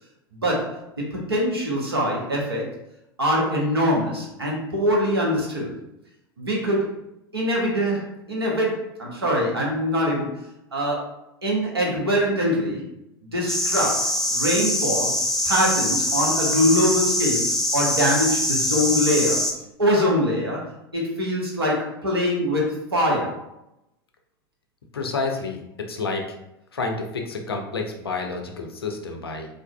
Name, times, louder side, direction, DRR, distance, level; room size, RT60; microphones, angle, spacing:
voice 1, 0.3-2.7 3.2-5.7 6.4-6.9 7.3-10.4 10.7-11.1 11.4-12.8 13.2-15.1 15.4-19.4 19.8-20.6 20.9-23.5, equal, 80° right, -3 dB, 0.7 m, -23 dB
sound 1, 13.5-19.5, left 1 dB, 5° left, 0.3 m, -24 dB
voice 2, 24.9-25.6 25.9-26.3 26.7-29.5, left 3 dB, 80° left, 3 dB, 0.4 m, -29 dB
2.4 x 2.3 x 2.2 m, 0.83 s
figure-of-eight pair, 80°, 13 cm